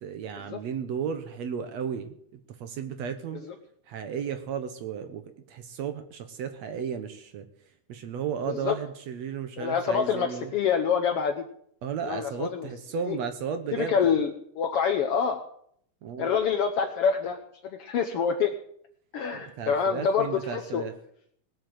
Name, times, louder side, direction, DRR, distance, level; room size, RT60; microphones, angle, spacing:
voice 1, 0.0-2.2 2.6-3.4 3.9-5.2 5.5-7.5 7.9-10.5 11.8-14.2 16.0-16.3 19.3-20.9, right 7 dB, 65° right, 9 dB, 1.9 m, -34 dB
voice 2, 9.6-11.4 12.0-12.7 13.0-13.2 13.7-15.4 16.2-17.4 17.6-18.5 19.1-20.9, left 6 dB, 90° left, 7 dB, 1.3 m, -26 dB
19.0 x 7.7 x 7.8 m, 0.67 s
omnidirectional pair, 3.9 m